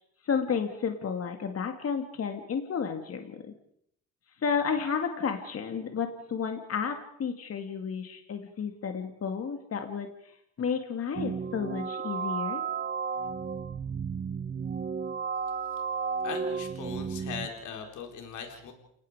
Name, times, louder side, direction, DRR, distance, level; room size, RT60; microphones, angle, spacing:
voice 1, 0.2-3.4 4.4-10.1 10.6-12.6, left 6 dB, 50° left, 5 dB, 2.3 m, -32 dB
sound 1, 11.2-17.5, right 6 dB, 35° right, 0.9 m, -33 dB
voice 2, 16.2-18.7, left 6 dB, 75° left, 3 dB, 4.2 m, -39 dB
29.5 x 18.5 x 5.0 m, 0.72 s
cardioid pair, 90°, 30 cm